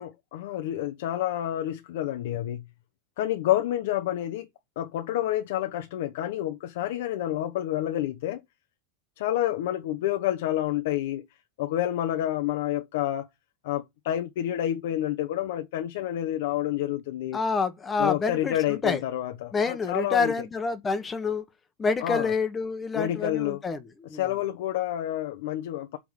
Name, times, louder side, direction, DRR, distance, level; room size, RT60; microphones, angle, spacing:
voice 1, 0.0-2.6 3.2-4.5 4.8-8.4 9.2-11.2 11.6-13.3 13.6-17.4 18.0-20.3 22.0-22.3 22.9-23.6 24.1-26.0, left 13 dB, 70° left, 1.0 m, -29 dB
voice 2, 17.3-19.0 19.5-21.4 21.8-24.4, left 4 dB, 15° left, 1.2 m, -28 dB
8.3 x 3.8 x 6.5 m
supercardioid pair, 155°, 0 cm